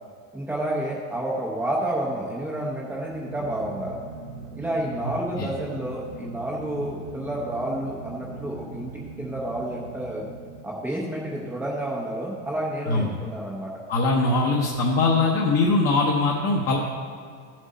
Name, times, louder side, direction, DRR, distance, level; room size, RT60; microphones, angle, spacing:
voice 1, 0.3-4.0 4.5-8.9 9.2-10.3 10.6-13.8, right 1 dB, 5° right, -5 dB, 0.5 m, -30 dB
sound 1, 2.8-11.2, right 4 dB, 80° right, 1.9 m, -40 dB
voice 2, 13.9-16.8, left 3 dB, 30° left, -2 dB, 0.8 m, -21 dB
14.0 x 7.5 x 4.1 m, 2.2 s
supercardioid pair, 170°, 46 cm